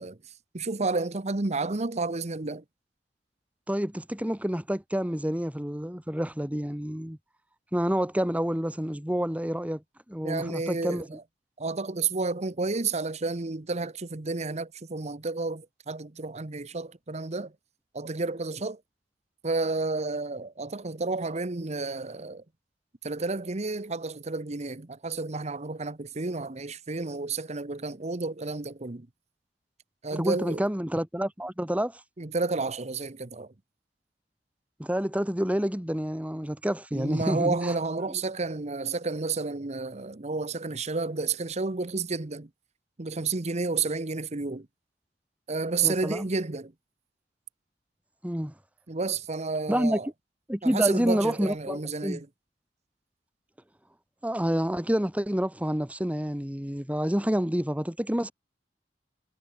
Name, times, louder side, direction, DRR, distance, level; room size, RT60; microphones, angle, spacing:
voice 1, 0.0-2.6 10.2-11.2 11.6-17.5 17.9-18.8 19.4-22.4 23.0-29.1 30.0-30.6 32.2-33.5 36.9-42.5 43.0-44.7 45.5-46.7 48.9-50.1 50.6-52.3, right 3 dB, 40° right, 1.0 m, -31 dB
voice 2, 3.7-7.2 7.7-9.8 10.1-11.1 30.1-32.0 34.8-37.7 45.8-46.3 48.2-48.5 49.7-50.0 50.5-52.2 54.2-58.3, equal, 10° right, 2.0 m, -28 dB
head